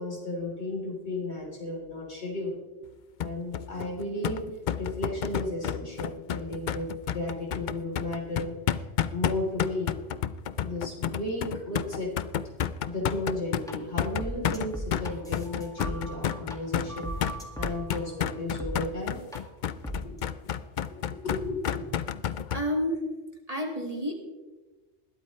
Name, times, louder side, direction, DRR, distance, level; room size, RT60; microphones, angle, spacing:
voice 1, 0.0-2.5 3.2-4.4 4.8-6.9 7.1-8.5 9.1-10.0 10.6-12.1 12.8-19.2 20.0-20.2 20.9-21.9, left 2 dB, 75° left, -2 dB, 3.9 m, -34 dB
sound 1, 3.2-22.6, left 9 dB, 55° left, 0.6 m, -31 dB
sound 2, 13.7-13.8 14.2-16.6 16.9-18.0 18.6-18.7 19.3-19.4 19.8-20.2, right 1 dB, 5° left, 1.9 m, -37 dB
voice 2, 22.5-23.0 23.5-24.1, equal, 35° right, 0 dB, 2.2 m, -29 dB
20.5 x 13.0 x 3.2 m, 1.2 s
omnidirectional pair, 1.1 m